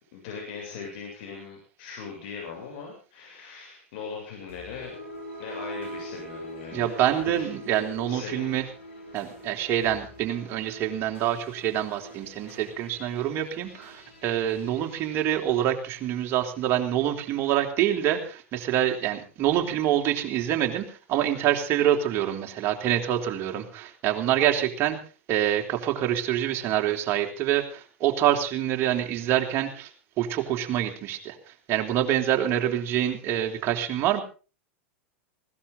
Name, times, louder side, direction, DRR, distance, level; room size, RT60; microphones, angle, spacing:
voice 1, 0.1-5.0 5.4-6.9 7.2-7.5 8.1-8.6, left 5 dB, 55° left, 0 dB, 7.3 m, -39 dB
sound 1, 4.5-16.8, equal, 75° left, 7.0 m, -43 dB
voice 2, 6.7-8.6 9.1-25.0 25.3-29.9 30.2-31.4 31.7-34.2, right 11 dB, 40° right, 3 dB, 3.5 m, -26 dB
20.0 x 17.5 x 3.9 m, 0.35 s
figure-of-eight pair, 90°, 7 cm